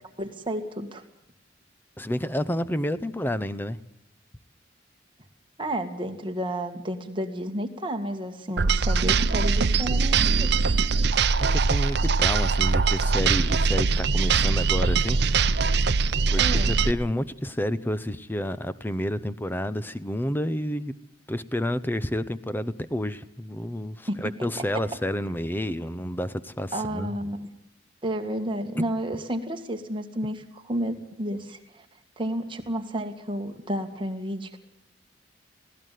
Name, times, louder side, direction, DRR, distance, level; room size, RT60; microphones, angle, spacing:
voice 1, 0.2-1.0 5.6-10.8 16.4-16.8 24.1-24.3 26.7-27.5 28.0-31.9 32.2-34.6, right 1 dB, 25° right, 5 dB, 1.9 m, -31 dB
voice 2, 2.0-3.8 11.4-15.2 15.6-15.8 16.3-20.9 21.3-27.1, equal, 10° left, 14 dB, 0.7 m, -30 dB
sound 1, 8.6-16.9, right 4 dB, 60° right, 0.7 m, -22 dB
19.0 x 16.5 x 9.3 m, 0.80 s
head